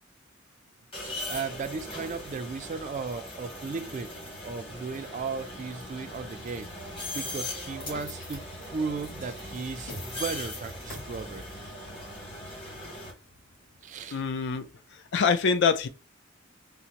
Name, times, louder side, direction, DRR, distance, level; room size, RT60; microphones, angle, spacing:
sound 1, 0.9-13.1, left 1 dB, 25° left, 1.2 m, -40 dB
voice 1, 1.3-4.1 4.4-6.7 7.1-8.4 8.7-11.5 13.8-14.2, right 4 dB, 40° right, 0.3 m, -35 dB
sound 2, 7.8-14.1, left 1 dB, 45° left, 1.6 m, -46 dB
voice 2, 14.1-15.9, left 5 dB, 60° left, 0.4 m, -25 dB
3.8 x 2.1 x 2.9 m
head